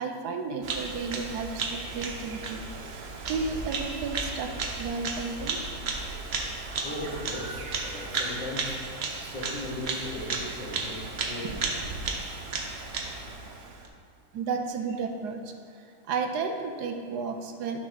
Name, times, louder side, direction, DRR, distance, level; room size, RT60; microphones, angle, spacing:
voice 1, 0.0-2.6 3.0-4.5 4.8-5.6 14.3-15.4 16.1-17.8, right 5 dB, 85° right, 5 dB, 1.3 m, -32 dB
Bird vocalization bird call bird song, 0.6-13.9, right 3 dB, 50° right, 0.8 m, -34 dB
voice 2, 6.6-8.8 9.2-11.9, left 1 dB, 20° left, -7 dB, 2.1 m, -38 dB
9.2 x 6.2 x 4.1 m, 2.3 s
omnidirectional pair, 1.7 m